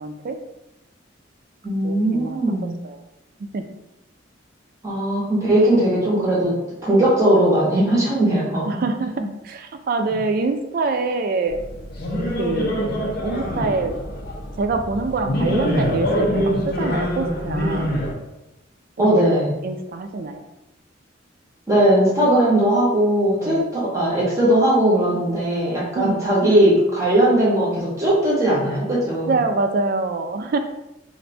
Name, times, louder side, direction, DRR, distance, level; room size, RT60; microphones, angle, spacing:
voice 1, 0.0-0.4 1.8-3.0 3.4-3.6 8.7-11.6 12.4-12.8 13.2-13.9 14.6-17.9 19.1-19.2 19.6-20.4 23.4-23.7 25.9-26.2 29.2-30.6, right 3 dB, 50° right, 6 dB, 0.3 m, -25 dB
voice 2, 1.6-2.8 4.8-6.5 6.8-8.7 19.0-19.5 21.7-29.3, right 1 dB, 15° right, -6 dB, 0.7 m, -18 dB
sound 1, 11.5-18.1, equal, 50° left, 0.5 m, -25 dB
2.5 x 2.2 x 4.0 m, 0.92 s
head